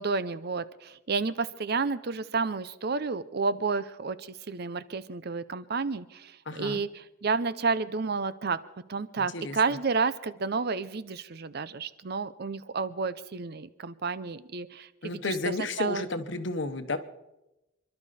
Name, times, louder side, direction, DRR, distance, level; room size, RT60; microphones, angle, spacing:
voice 1, 0.0-6.9 7.2-8.6 8.9-15.2 15.8-16.0, right 4 dB, 55° right, 15 dB, 0.6 m, -30 dB
voice 2, 6.4-6.8 9.2-9.8 15.0-17.0, left 3 dB, 65° left, 10 dB, 1.1 m, -32 dB
27.0 x 12.0 x 4.2 m, 0.96 s
head